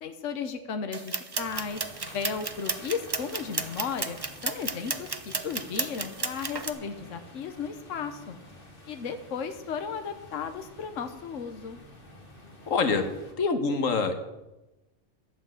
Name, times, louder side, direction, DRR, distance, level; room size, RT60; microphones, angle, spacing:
voice 1, 0.0-4.2 4.4-8.4 8.9-11.8, left 6 dB, 70° left, 7 dB, 1.3 m, -35 dB
sound 1, 0.9-6.7, right 4 dB, 25° right, 0.7 m, -33 dB
sound 2, 1.3-13.3, left 1 dB, 45° left, 2.5 m, -49 dB
voice 2, 12.7-13.0 13.4-14.2, left 4 dB, 85° left, 7 dB, 1.6 m, -25 dB
12.0 x 8.9 x 7.6 m, 1.0 s
omnidirectional pair, 1.3 m